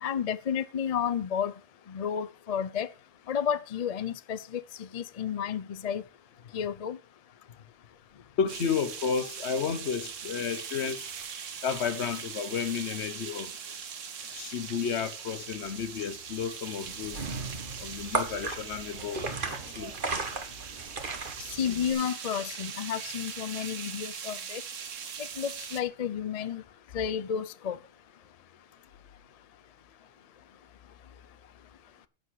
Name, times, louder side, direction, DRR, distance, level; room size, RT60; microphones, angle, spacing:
voice 1, 0.0-1.5 1.9-2.9 3.3-4.6 4.9-6.0 6.5-7.0 21.6-24.6 25.4-26.6 26.9-27.8, left 8 dB, 45° left, 0.5 m, -31 dB
voice 2, 8.4-11.1 11.6-13.5 14.3-17.3 17.8-19.9, left 6 dB, 65° left, 1.2 m, -32 dB
sound 1, 8.5-25.8, right 7 dB, 85° right, 1.4 m, -41 dB
sound 2, 16.8-21.9, right 3 dB, 45° right, 1.7 m, -35 dB
11.5 x 8.1 x 4.8 m
omnidirectional pair, 1.3 m